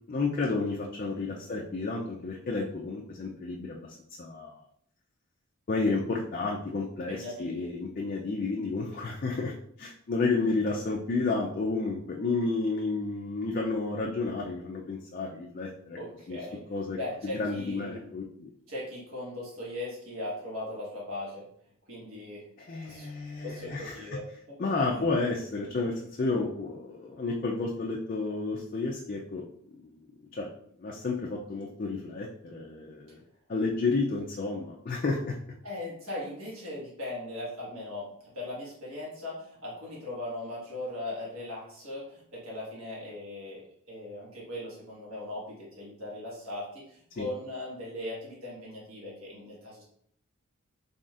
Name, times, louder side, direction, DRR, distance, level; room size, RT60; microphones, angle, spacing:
voice 1, 0.1-3.9 4.2-4.6 5.7-16.0 16.3-16.4 16.7-17.0 17.2-18.5 22.6-24.0 24.6-29.5 29.8-29.9 30.3-30.5 30.8-33.2 33.5-35.4 47.2-47.3, left 3 dB, 40° left, -1 dB, 0.4 m, -31 dB
voice 2, 1.3-1.6 7.1-7.7 15.9-16.6 16.9-18.0 18.7-21.5 21.9-22.4 22.8-24.5 24.9-25.0 35.6-49.8, left 1 dB, 70° right, -6 dB, 1.6 m, -39 dB
3.9 x 3.4 x 2.4 m, 0.67 s
head